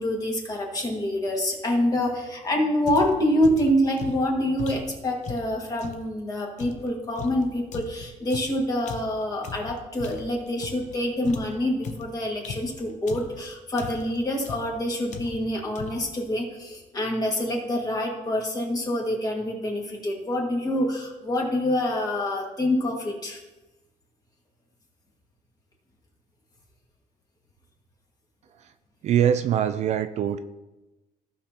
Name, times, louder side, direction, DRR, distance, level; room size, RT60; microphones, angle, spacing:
voice 1, 0.0-23.4, left 1 dB, 25° left, 0 dB, 1.8 m, -26 dB
sound 1, 2.9-6.1 6.6-11.0 11.2-13.4 13.8-14.2 14.4-14.8 15.1-15.5 15.7-16.1, left 5 dB, 50° left, 0.9 m, -38 dB
voice 2, 29.0-30.4, right 9 dB, 50° right, 10 dB, 0.4 m, -23 dB
15.5 x 5.6 x 2.9 m, 1.1 s
cardioid pair, 155°, 15 cm